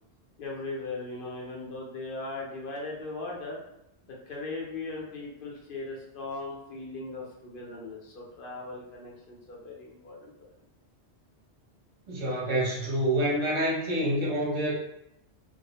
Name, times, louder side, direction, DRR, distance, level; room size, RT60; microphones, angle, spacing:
voice 1, 0.4-3.6 4.1-10.3, left 3 dB, 60° left, -3 dB, 0.7 m, -38 dB
voice 2, 12.1-14.7, right 1 dB, 40° right, -5 dB, 0.8 m, -27 dB
2.2 x 2.1 x 2.8 m, 0.81 s
omnidirectional pair, 1.1 m